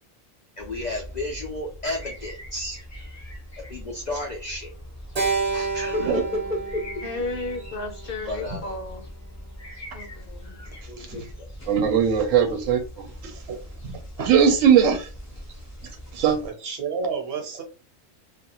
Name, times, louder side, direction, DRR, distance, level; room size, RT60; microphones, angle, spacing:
voice 1, 0.6-2.8 3.7-4.7 5.5-6.8 8.3-8.7 10.9-11.5, left 1 dB, 75° left, 0.4 m, -32 dB
sound 1, 0.6-16.5, equal, 20° left, 0.5 m, -41 dB
Keyboard (musical), 5.2-9.6, right 4 dB, 40° right, 0.6 m, -31 dB
voice 2, 7.0-9.0 9.9-10.6, left 2 dB, 55° left, 0.7 m, -33 dB
voice 3, 10.8-11.1 13.5-13.6 14.2-14.3 16.3-17.6, right 5 dB, 55° right, 1.0 m, -31 dB
voice 4, 11.7-13.5 13.8-13.9 14.3-15.1 16.1-16.4, right 8 dB, 80° right, 0.9 m, -20 dB
2.4 x 2.3 x 2.8 m
omnidirectional pair, 1.3 m